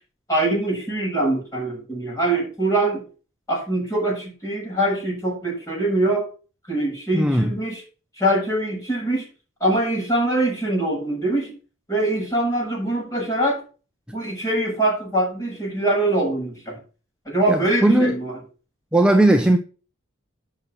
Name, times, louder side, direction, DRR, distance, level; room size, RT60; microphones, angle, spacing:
voice 1, 0.3-3.0 3.5-6.3 6.7-7.8 8.2-9.2 9.6-11.5 11.9-13.6 14.1-16.8 17.3-18.3, right 1 dB, 15° left, 7.6 m, -23 dB
voice 2, 7.1-7.5 17.5-18.2 18.9-19.6, right 1 dB, 5° right, 0.9 m, -17 dB
9.5 x 6.4 x 7.3 m
head